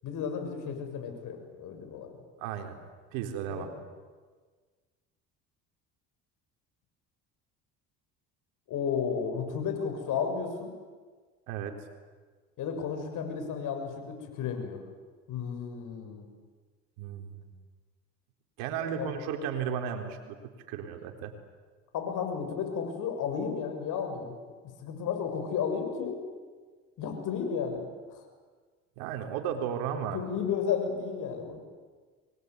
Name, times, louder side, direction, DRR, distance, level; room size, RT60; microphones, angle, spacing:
voice 1, 0.0-2.2 3.5-3.7 8.7-10.7 12.6-14.8 15.3-16.3 19.0-19.1 21.9-24.3 24.8-26.2 27.0-28.2 30.1-31.6, left 6 dB, 65° left, 5 dB, 7.0 m, -33 dB
voice 2, 2.4-2.8 3.1-3.7 11.5-11.7 17.0-17.5 18.6-20.4 20.7-21.3 29.0-30.2, right 8 dB, 80° right, 5 dB, 4.0 m, -34 dB
25.0 x 22.0 x 9.7 m, 1.5 s
supercardioid pair, 75°, 33 cm